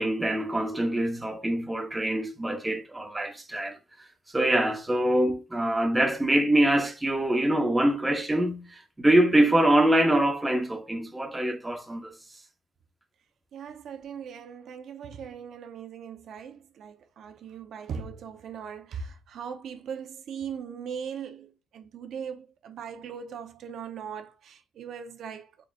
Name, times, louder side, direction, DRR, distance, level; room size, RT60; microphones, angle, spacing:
voice 1, 0.0-3.8 4.3-12.1, right 1 dB, 15° right, 0.8 m, -24 dB
voice 2, 13.5-25.5, right 7 dB, 70° right, 0.5 m, -39 dB
3.8 x 3.7 x 2.2 m
cardioid pair, 90°, 0 cm